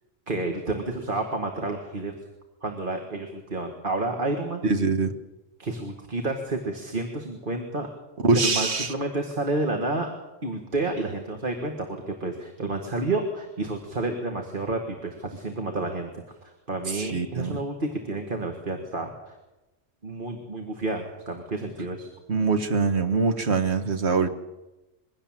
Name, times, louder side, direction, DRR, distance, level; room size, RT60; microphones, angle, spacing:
voice 1, 0.3-2.1 2.6-4.6 5.6-7.9 8.3-10.1 10.4-16.1 16.4-19.3 20.0-22.1, right 2 dB, 45° right, 3 dB, 2.0 m, -30 dB
voice 2, 4.6-5.1 8.2-8.9 16.9-17.6 22.3-24.3, right 4 dB, 60° right, 8 dB, 1.7 m, -23 dB
22.5 x 17.0 x 7.5 m, 1.0 s
omnidirectional pair, 1.3 m